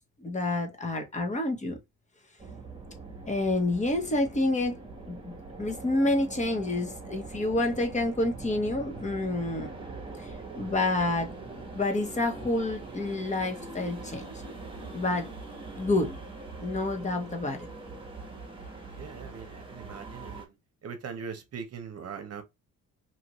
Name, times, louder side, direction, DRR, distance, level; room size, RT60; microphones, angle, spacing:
voice 1, 0.2-1.8 3.3-9.7 10.2-10.3 10.6-11.3 11.7-14.3 14.9-15.3 15.7-16.1 16.6-17.7, left 2 dB, 25° left, 1.0 m, -28 dB
sound 1, 2.4-20.4, right 3 dB, 15° right, 1.2 m, -42 dB
voice 2, 18.9-20.5 20.8-22.4, right 6 dB, 55° right, 0.8 m, -41 dB
2.8 x 2.5 x 3.0 m
cardioid pair, 90°, 30 cm